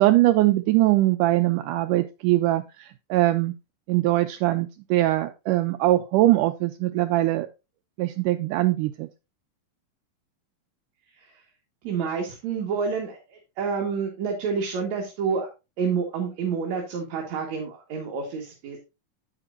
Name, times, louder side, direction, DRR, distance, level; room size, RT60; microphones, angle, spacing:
voice 1, 0.0-3.5 3.9-7.5 8.0-9.1, right 16 dB, 80° right, 9 dB, 1.9 m, -22 dB
voice 2, 11.8-15.5 15.8-18.8, right 5 dB, 55° right, 0 dB, 2.7 m, -29 dB
9.8 x 9.1 x 2.6 m, 0.26 s
omnidirectional pair, 4.1 m